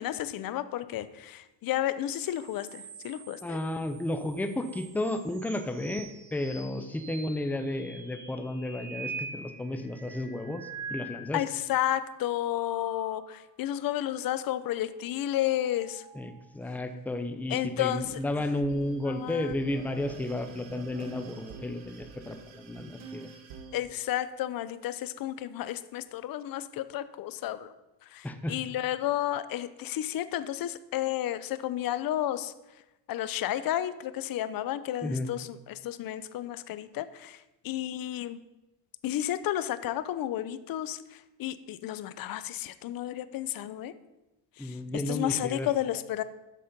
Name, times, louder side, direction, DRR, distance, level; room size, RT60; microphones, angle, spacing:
voice 1, 0.0-3.6 11.3-16.0 17.5-18.0 19.1-19.5 23.7-27.7 28.1-32.5 33.1-38.4 39.0-43.9 44.6-46.2, left 12 dB, 50° left, 14 dB, 0.6 m, -32 dB
sound 1, 2.1-11.7 12.1-13.5 15.3-16.5, right 4 dB, 65° right, 2.6 m, -45 dB
voice 2, 3.4-11.4 16.1-23.3 28.2-28.6 35.0-35.3 44.6-45.7, left 1 dB, 5° left, 8 dB, 0.6 m, -33 dB
sound 2, 17.8-23.8, right 5 dB, 90° right, 1.5 m, -47 dB
12.5 x 4.2 x 5.2 m, 1.0 s
cardioid pair, 100°, 46 cm